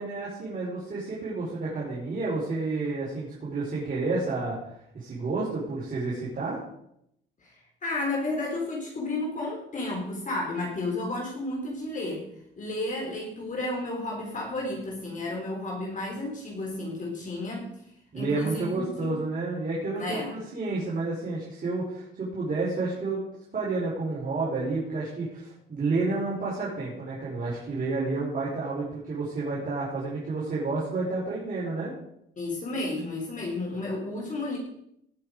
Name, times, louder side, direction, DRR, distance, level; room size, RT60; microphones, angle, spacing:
voice 1, 0.0-6.6 18.1-23.2 23.5-31.9, right 3 dB, 45° right, -6 dB, 5.0 m, -30 dB
voice 2, 7.8-12.2 12.6-17.7 18.1-19.1 20.0-20.3 32.4-34.6, left 2 dB, 40° left, -1 dB, 3.9 m, -32 dB
18.5 x 6.8 x 5.1 m, 0.76 s
cardioid pair, 90°, 20 cm